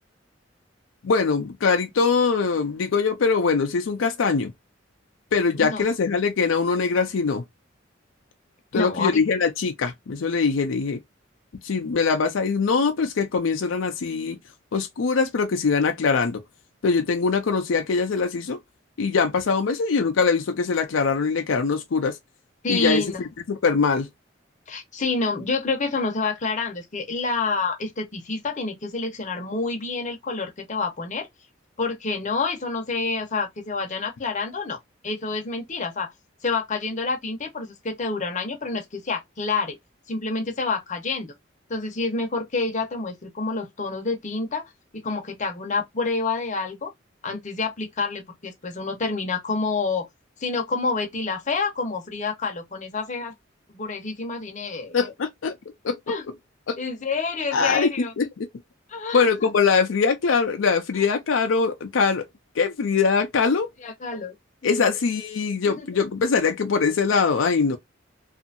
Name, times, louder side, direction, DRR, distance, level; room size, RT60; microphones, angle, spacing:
voice 1, 1.0-4.5 5.3-7.4 8.7-11.0 11.6-14.4 14.7-16.4 16.8-18.6 19.0-22.2 22.7-24.1 54.9-55.6 55.8-56.0 56.7-56.8 57.5-58.5 59.1-62.3 62.6-63.7 64.6-67.8, left 5 dB, 80° left, 0.5 m, -22 dB
voice 2, 5.6-5.9 8.7-9.1 22.6-23.2 24.7-31.3 31.8-36.1 36.4-39.8 40.1-41.3 41.7-44.6 44.9-46.9 47.2-50.1 50.4-53.3 53.7-55.0 56.1-56.2 56.8-58.1 58.9-59.5 60.9-61.1 63.8-64.3 64.6-64.9 65.7-65.9, left 4 dB, 40° left, 0.7 m, -28 dB
2.7 x 2.4 x 2.5 m
head